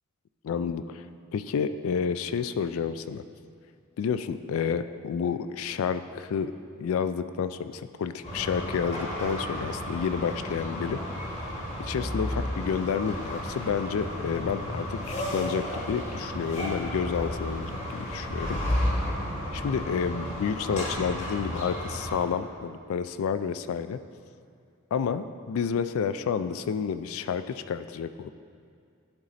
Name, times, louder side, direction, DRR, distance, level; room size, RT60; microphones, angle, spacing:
voice 1, 0.4-1.1 1.3-3.2 4.0-6.5 6.8-11.0 11.8-15.0 15.3-18.8 19.5-24.0 24.9-28.3, left 6 dB, 65° left, 11 dB, 0.3 m, -30 dB
sound 1, 8.2-22.2, left 1 dB, 30° left, 1.3 m, -33 dB
11.5 x 4.1 x 3.9 m, 2.3 s
head